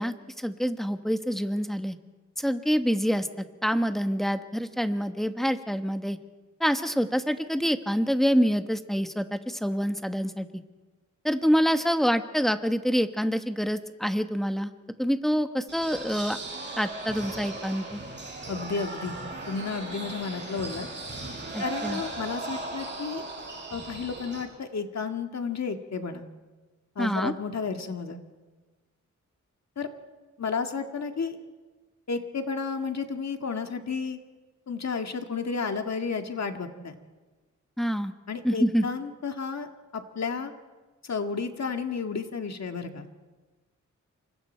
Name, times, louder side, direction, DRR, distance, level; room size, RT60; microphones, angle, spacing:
voice 1, 0.0-2.0 2.4-3.3 3.6-6.2 6.6-10.5 11.2-14.7 15.0-16.4 16.8-18.0 21.5-22.0 27.0-27.3 37.8-38.1 38.4-38.8, equal, ahead, 8 dB, 1.3 m, -26 dB
sound 1, 15.7-24.4, right 2 dB, 35° right, 7.5 m, -37 dB
voice 2, 18.5-19.2 19.5-20.9 21.6-23.2 23.7-26.2 27.0-28.2 29.8-29.9 30.4-31.4 32.1-34.2 34.7-37.0 38.3-39.7 39.9-40.5 41.1-43.1, left 5 dB, 60° left, 5 dB, 1.9 m, -32 dB
28.0 x 24.5 x 4.5 m, 1.3 s
wide cardioid pair, 90°, 30 cm